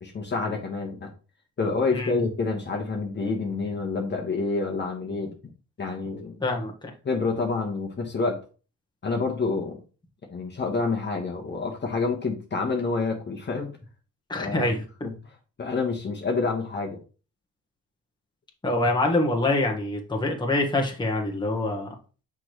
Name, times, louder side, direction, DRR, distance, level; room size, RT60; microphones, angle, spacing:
voice 1, 0.0-1.1 1.6-5.3 5.8-6.4 7.0-8.4 9.0-9.8 10.3-13.7 14.4-14.7 15.0-15.1 15.6-17.0, left 4 dB, 35° left, 0 dB, 1.3 m, -28 dB
voice 2, 6.4-6.9 14.3-14.8 18.6-21.9, left 2 dB, 15° left, 1 dB, 1.4 m, -25 dB
6.2 x 4.8 x 3.1 m, 0.35 s
cardioid pair, 90°, 30 cm